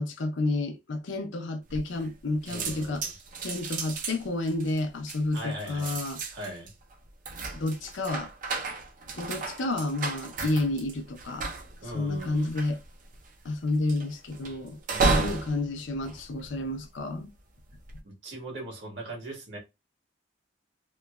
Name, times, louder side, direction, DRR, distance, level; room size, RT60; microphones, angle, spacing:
voice 1, 0.0-3.0 3.4-6.2 7.5-8.3 9.1-11.5 11.9-12.8 13.4-17.3, left 2 dB, 70° left, 0.5 m, -30 dB
sound 1, 1.7-2.2 2.5-17.0 17.6-18.0, right 3 dB, 40° right, 0.4 m, -33 dB
voice 2, 2.5-3.1 5.3-6.0 6.3-6.7 11.8-12.5 14.9-15.4 18.0-19.6, right 1 dB, 65° right, 1.4 m, -40 dB
3.0 x 2.2 x 2.2 m
head